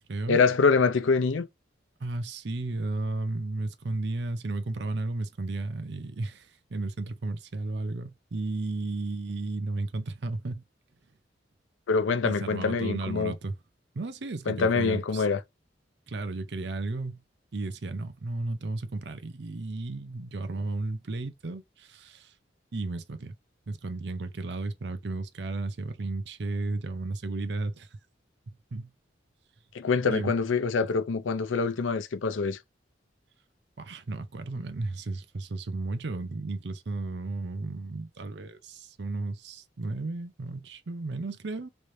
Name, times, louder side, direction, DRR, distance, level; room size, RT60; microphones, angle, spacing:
voice 1, 0.3-1.5 11.9-13.3 14.5-15.4 29.7-32.6, left 4 dB, 85° left, 0.5 m, -25 dB
voice 2, 2.0-10.6 12.2-13.6 13.9-15.3 16.1-17.2 17.5-22.3 22.7-23.3 23.7-27.9 28.5-28.9 30.1-30.3 33.8-41.7, right 2 dB, 65° right, 0.6 m, -34 dB
3.2 x 3.1 x 2.6 m
head